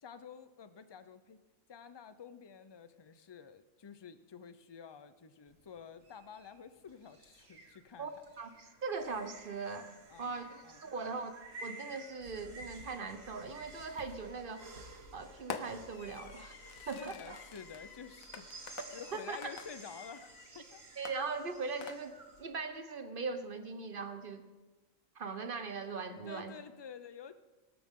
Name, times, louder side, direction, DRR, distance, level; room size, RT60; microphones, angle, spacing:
voice 1, 0.0-1.4 1.7-8.1 10.1-10.8 16.8-20.3 20.5-20.8 26.2-27.3, left 6 dB, 35° left, 11 dB, 0.4 m, -50 dB
sound 1, 5.5-22.4, right 2 dB, 70° right, 2.1 m, -53 dB
voice 2, 8.4-9.9 10.2-11.3 11.6-16.5 16.9-17.4 19.1-19.4 21.0-24.4 25.1-26.5, right 4 dB, 45° right, 9 dB, 1.1 m, -40 dB
Fireworks, 14.0-14.4 15.5-20.5 21.1-22.4, left 7 dB, 80° left, 1.4 m, -48 dB
23.5 x 13.0 x 3.7 m, 1.2 s
omnidirectional pair, 1.4 m